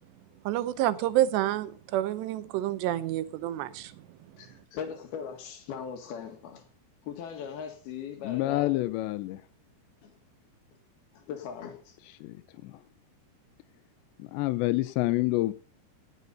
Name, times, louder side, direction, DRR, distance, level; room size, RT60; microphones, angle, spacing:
voice 1, 0.5-3.9, right 13 dB, 85° right, 2.9 m, -28 dB
voice 2, 4.4-6.7 7.0-8.8 10.0-10.1 11.2-12.0, left 7 dB, 65° left, 3.8 m, -39 dB
voice 3, 8.2-9.4 12.2-12.8 14.2-15.5, left 18 dB, 90° left, 3.0 m, -28 dB
17.5 x 8.2 x 5.5 m
omnidirectional pair, 4.9 m